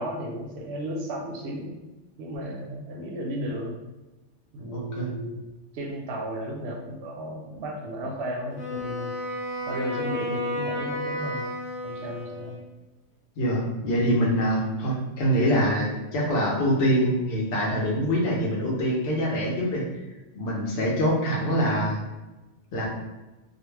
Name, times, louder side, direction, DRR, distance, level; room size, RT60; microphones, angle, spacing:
voice 1, 0.0-1.8 2.2-3.8 4.5-5.5 5.7-9.1 9.7-11.5 11.8-12.6, equal, 65° right, 0 dB, 0.7 m, -34 dB
voice 2, 4.7-5.1 13.4-19.8 20.3-22.0 22.7-22.9, equal, 55° left, -3 dB, 0.8 m, -24 dB
Wind instrument woodwind instrument, 8.5-12.7, equal, 80° left, 1.1 m, -32 dB
2.3 x 2.1 x 3.2 m, 1.1 s
omnidirectional pair, 1.3 m